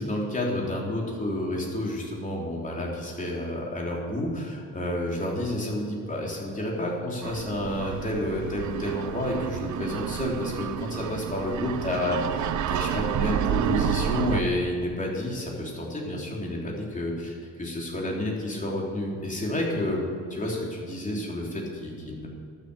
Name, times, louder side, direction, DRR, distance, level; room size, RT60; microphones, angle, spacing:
voice 1, 0.0-22.3, left 1 dB, 25° left, -2 dB, 3.5 m, -30 dB
sound 1, 7.2-14.4, right 9 dB, 75° right, 0.7 m, -30 dB
12.0 x 8.1 x 6.8 m, 2.3 s
cardioid pair, 90°, 30 cm